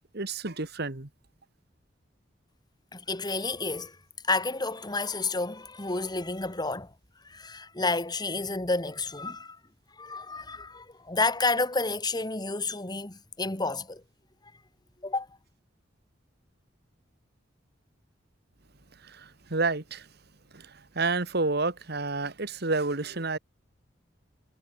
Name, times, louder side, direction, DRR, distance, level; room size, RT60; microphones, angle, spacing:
voice 1, 0.1-1.1 19.0-20.1 20.5-23.4, right 3 dB, 60° right, 2.0 m, -30 dB
voice 2, 2.9-4.0 4.2-6.9 7.2-9.6 10.0-14.0 15.0-15.3, left 3 dB, 25° left, 2.3 m, -30 dB
head